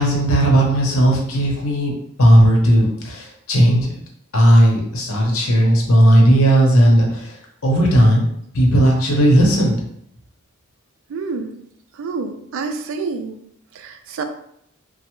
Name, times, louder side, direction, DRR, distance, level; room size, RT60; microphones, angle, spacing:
voice 1, 0.0-1.9 2.2-3.9 4.3-7.2 7.6-8.2 8.5-9.8, right 1 dB, 70° left, -1 dB, 0.8 m, -15 dB
voice 2, 11.1-11.6 12.0-13.4 13.8-14.2, right 4 dB, 65° right, 7 dB, 0.3 m, -28 dB
3.2 x 2.0 x 3.0 m, 0.73 s
head